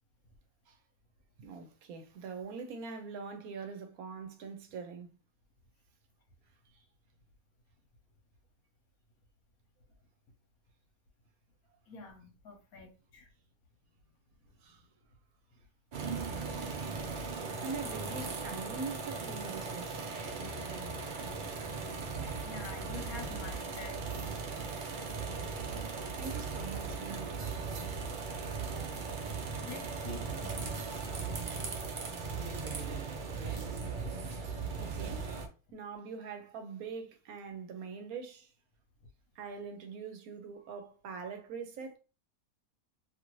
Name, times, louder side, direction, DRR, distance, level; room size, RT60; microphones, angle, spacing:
voice 1, 1.4-5.1 14.6-14.9 17.6-20.1 26.2-27.4 32.7-33.2 34.8-35.3 35.7-38.5 39.4-42.0, right 5 dB, 75° right, 1.0 m, -43 dB
voice 2, 11.9-13.3 16.8-17.3 21.6-21.7 22.4-24.1 24.5-24.7 28.1-28.3 29.4-30.8, left 5 dB, 70° left, 1.2 m, -48 dB
sound 1, 15.9-35.5, right 4 dB, 90° right, 0.4 m, -38 dB
2.7 x 2.5 x 3.0 m
omnidirectional pair, 1.6 m